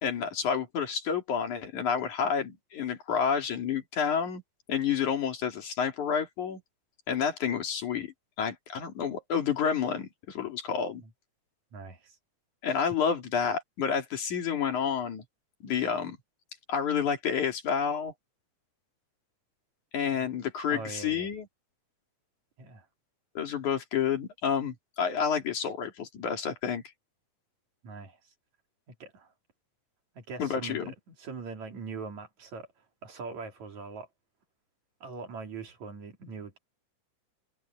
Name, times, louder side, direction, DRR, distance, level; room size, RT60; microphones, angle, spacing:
voice 1, 0.0-4.4 4.7-6.6 7.1-11.0 12.6-15.2 15.6-16.2 16.7-18.1 19.9-21.5 23.4-26.8 30.4-30.9, left 7 dB, 75° left, 4.2 m, -29 dB
voice 2, 11.7-12.2 20.1-20.3 20.7-21.3 22.6-22.9 27.8-28.2 29.0-29.3 30.2-32.7 33.0-34.1 35.0-36.6, right 4 dB, 65° right, 4.5 m, -42 dB
omnidirectional pair, 3.4 m